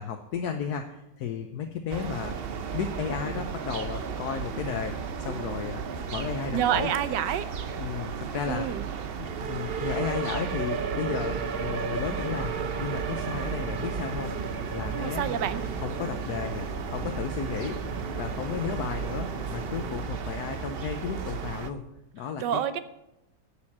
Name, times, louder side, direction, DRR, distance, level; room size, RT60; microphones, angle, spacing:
voice 1, 0.0-2.5 2.7-5.8 6.1-6.9 7.8-8.7 9.2-12.5 12.8-15.4 15.8-16.7 16.9-17.8 18.2-21.8 22.1-22.6, left 7 dB, 70° left, 5 dB, 1.3 m, -34 dB
sound 1, 1.9-21.7, right 6 dB, 55° right, 0.6 m, -33 dB
voice 2, 6.5-7.5 8.5-8.9 14.9-15.6 22.4-22.8, right 10 dB, 85° right, 13 dB, 1.4 m, -28 dB
sound 2, 11.3-20.0, right 1 dB, 5° right, 5.0 m, -39 dB
10.5 x 7.5 x 7.2 m, 0.90 s
omnidirectional pair, 1.8 m